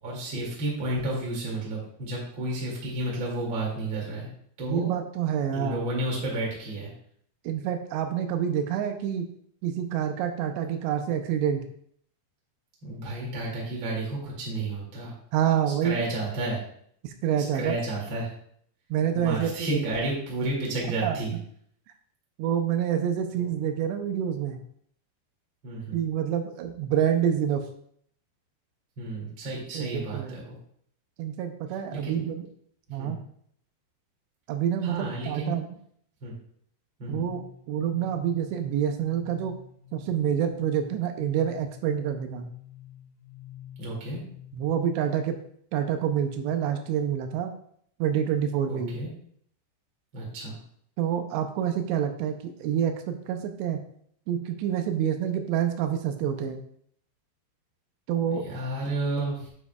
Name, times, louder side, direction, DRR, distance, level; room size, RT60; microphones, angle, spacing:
voice 1, 0.0-4.3 4.6-4.9 5.5-6.9 12.8-15.1 15.8-16.6 17.5-18.3 19.1-21.4 23.3-23.5 25.6-26.0 29.0-30.6 31.9-32.2 33.0-33.2 34.8-35.5 36.2-36.3 37.0-37.3 43.8-44.2 48.7-49.1 50.1-50.6 58.3-59.5, right 2 dB, 35° right, -4 dB, 2.2 m, -31 dB
voice 2, 4.7-5.8 7.4-9.3 9.6-11.6 15.3-16.0 17.0-17.8 18.9-19.8 21.0-21.2 22.4-24.6 25.9-27.6 29.7-30.4 31.2-32.5 32.9-33.2 34.5-35.6 37.1-39.5 39.9-42.5 44.5-45.4 45.7-47.5 48.0-49.0 51.0-53.8 54.3-56.6 58.1-58.5, right 9 dB, 80° right, 6 dB, 2.7 m, -27 dB
sound 1, 37.3-44.8, left 11 dB, 80° left, 2.3 m, -47 dB
9.7 x 7.4 x 2.3 m, 0.64 s
omnidirectional pair, 5.2 m